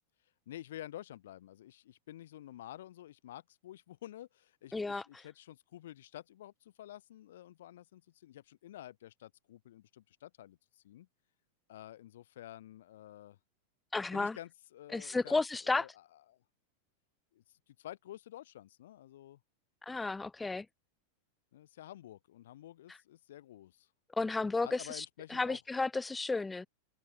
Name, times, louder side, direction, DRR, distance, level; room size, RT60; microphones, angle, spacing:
voice 1, 0.5-11.1 11.7-13.4 14.1-16.4 17.3-19.4 21.5-23.9 24.6-25.6, left 13 dB, 60° left, 2.8 m, -50 dB
voice 2, 4.7-5.0 13.9-14.4 14.9-15.9 19.8-20.7 24.2-25.1 25.3-26.7, left 3 dB, 10° left, 0.5 m, -33 dB
figure-of-eight pair, 90°, 0 cm